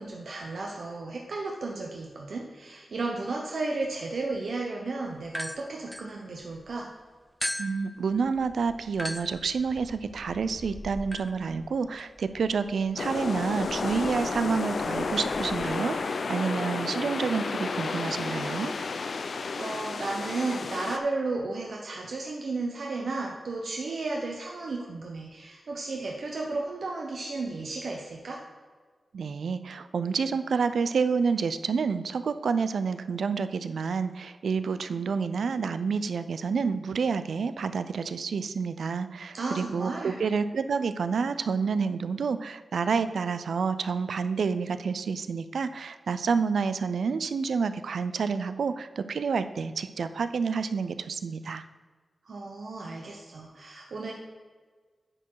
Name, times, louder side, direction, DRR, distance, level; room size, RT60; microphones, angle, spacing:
voice 1, 0.0-6.9 19.6-28.4 39.3-40.2 52.2-54.1, right 3 dB, 65° right, 0 dB, 0.8 m, -33 dB
sound 1, 5.3-6.7 7.4-15.7, equal, 5° left, 0.4 m, -41 dB
voice 2, 7.6-18.7 29.1-51.6, right 5 dB, 90° right, 12 dB, 0.4 m, -29 dB
sound 2, 13.0-21.0, left 4 dB, 60° left, 0.4 m, -31 dB
9.7 x 4.6 x 4.7 m, 1.5 s
wide cardioid pair, 155°, 0 cm